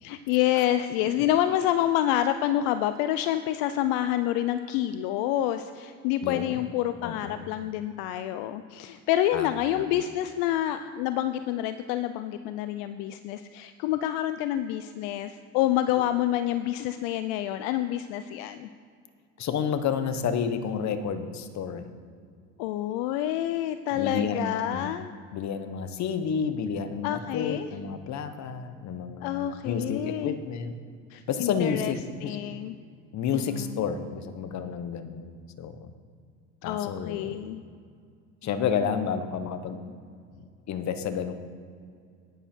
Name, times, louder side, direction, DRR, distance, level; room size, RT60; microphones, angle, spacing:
voice 1, 0.0-18.7 22.6-25.1 27.0-27.7 29.2-30.4 31.1-31.9 32.2-32.8 33.3-33.8 36.6-37.6, left 12 dB, 75° left, 11 dB, 0.6 m, -28 dB
voice 2, 6.2-6.6 7.0-7.5 9.3-9.5 9.7-9.8 19.4-21.9 23.9-24.9 25.3-30.7 31.3-32.4 33.1-35.9 36.6-37.4 38.4-39.8 40.7-41.3, left 7 dB, 50° left, 10 dB, 1.2 m, -30 dB
10.5 x 10.0 x 4.5 m, 2.2 s
supercardioid pair, 85°, 36 cm